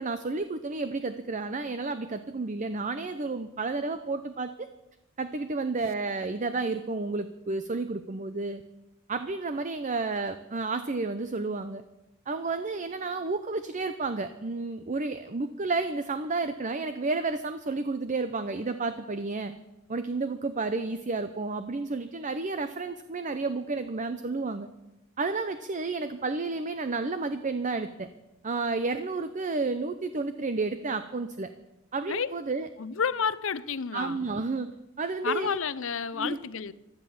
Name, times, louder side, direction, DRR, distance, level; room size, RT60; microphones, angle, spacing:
voice 1, 0.0-4.7 5.2-8.6 9.1-11.8 12.3-19.5 19.9-24.7 25.2-28.1 28.4-31.5 31.9-32.7 33.9-34.7 35.0-35.6 36.2-36.4, right 3 dB, 35° right, 0.7 m, -31 dB
voice 2, 32.8-34.2 35.2-36.7, left 6 dB, 65° left, 0.7 m, -30 dB
16.0 x 12.0 x 7.1 m
head